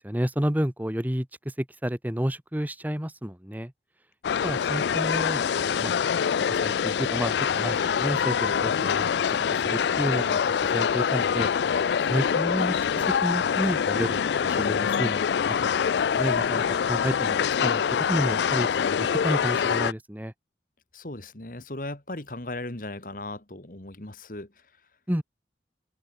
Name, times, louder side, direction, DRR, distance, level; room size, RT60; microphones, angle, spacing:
voice 1, 0.0-3.7 4.4-5.9 6.6-10.4 10.7-11.5 12.1-20.3 25.1-25.2, equal, 10° right, 1.1 m, -31 dB
sound 1, 4.2-19.9, left 7 dB, 75° left, 0.4 m, -25 dB
voice 2, 20.9-24.5, left 2 dB, 50° left, 2.1 m, -37 dB
head